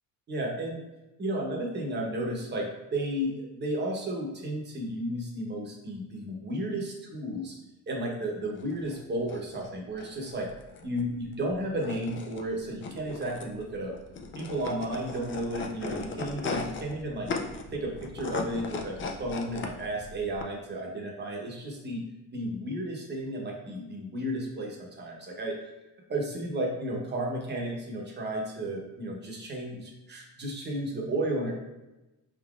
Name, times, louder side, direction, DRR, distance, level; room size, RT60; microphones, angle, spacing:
voice 1, 0.3-0.8 1.2-7.6 7.9-10.5 10.8-13.9 14.3-17.3 17.7-22.0 22.3-25.6 26.1-31.5, right 1 dB, 30° right, -1 dB, 0.9 m, -33 dB
sound 1, 8.5-20.4, left 4 dB, 35° left, 0.4 m, -38 dB
4.0 x 3.7 x 2.4 m, 1.0 s
cardioid pair, 125°, 33 cm